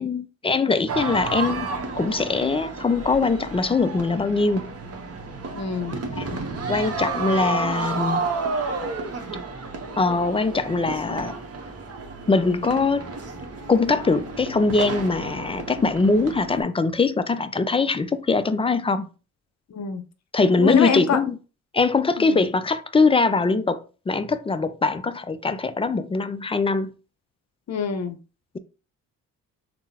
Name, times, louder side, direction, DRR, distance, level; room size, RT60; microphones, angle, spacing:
voice 1, 0.0-1.7 2.0-4.7 6.1-6.4 6.7-8.2 10.0-11.4 12.3-13.1 13.7-19.1 20.3-21.4 21.7-26.9, left 4 dB, 15° left, 0.3 m, -22 dB
sound 1, 0.9-16.6, right 3 dB, 35° right, 0.9 m, -31 dB
voice 2, 5.5-6.0 19.7-20.0 20.6-21.2 22.2-22.4 27.7-28.2, left 6 dB, 45° left, 0.7 m, -24 dB
3.6 x 2.1 x 2.8 m
hypercardioid pair, 50°, 39 cm